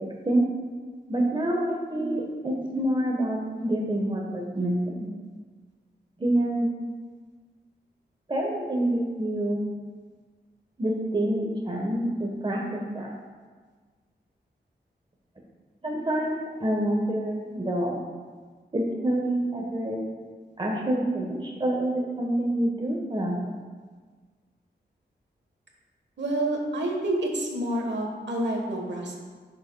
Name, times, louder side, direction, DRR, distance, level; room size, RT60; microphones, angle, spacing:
voice 1, 1.1-5.1 6.2-6.7 8.3-9.6 10.8-13.1 15.8-18.0 18.7-20.0 20.6-23.5, right 1 dB, 25° right, -1 dB, 1.2 m, -27 dB
voice 2, 26.2-29.2, right 1 dB, 75° right, 1 dB, 1.3 m, -28 dB
9.8 x 6.6 x 2.3 m, 1.5 s
cardioid pair, 65°, 18 cm